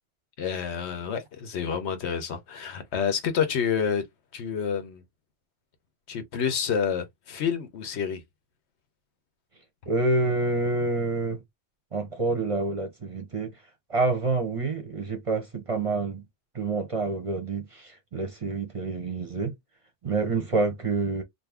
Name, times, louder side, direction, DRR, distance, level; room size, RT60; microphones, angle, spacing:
voice 1, 0.4-4.0 4.3-5.0 6.1-8.2, left 7 dB, 85° left, 1.1 m, -28 dB
voice 2, 9.9-11.4 11.9-13.6 13.9-16.2 16.5-19.5 20.0-21.2, right 3 dB, 35° right, 0.7 m, -27 dB
2.6 x 2.6 x 3.4 m
omnidirectional pair, 1.1 m